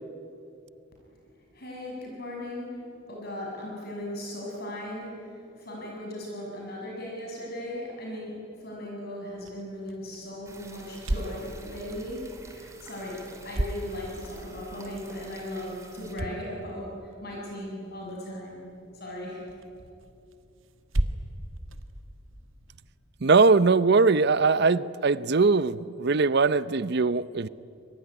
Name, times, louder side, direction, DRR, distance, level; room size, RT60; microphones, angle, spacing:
voice 1, 1.5-18.7 18.9-19.5, left 1 dB, 50° left, -2 dB, 6.6 m, -37 dB
sound 1, 9.3-22.9, right 1 dB, 75° right, 1.5 m, -37 dB
sound 2, 10.4-16.1, right 2 dB, 15° right, 3.0 m, -49 dB
voice 2, 23.2-27.5, right 4 dB, 55° right, 17 dB, 0.7 m, -21 dB
26.5 x 23.0 x 9.8 m, 2.6 s
head